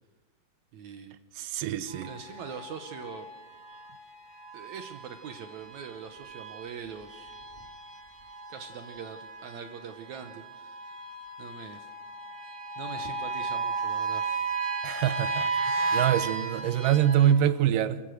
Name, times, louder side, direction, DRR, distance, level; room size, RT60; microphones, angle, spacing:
voice 1, 0.7-1.1 2.0-3.3 4.5-7.3 8.5-11.0 11.4-11.9 12.8-14.4, right 7 dB, 70° right, 2.1 m, -42 dB
voice 2, 1.4-2.1 14.8-18.0, right 10 dB, 90° right, 2.5 m, -25 dB
sound 1, 1.9-17.3, right 4 dB, 25° right, 1.0 m, -35 dB
28.5 x 14.5 x 6.4 m
omnidirectional pair, 3.8 m